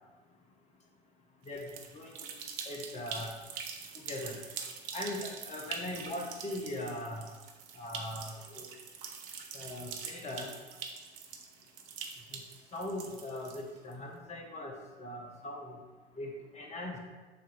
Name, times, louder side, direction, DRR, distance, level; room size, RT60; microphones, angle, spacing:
sound 1, 1.5-13.9, right 6 dB, 55° right, 1.0 m, -44 dB
voice 1, 2.7-3.3 4.1-4.4 4.9-7.3 7.8-8.7 9.5-10.5 12.7-14.7 15.0-15.8 16.2-17.0, left 1 dB, 20° left, 1 dB, 1.2 m, -40 dB
7.5 x 3.0 x 5.7 m, 1.3 s
figure-of-eight pair, 90°, 33 cm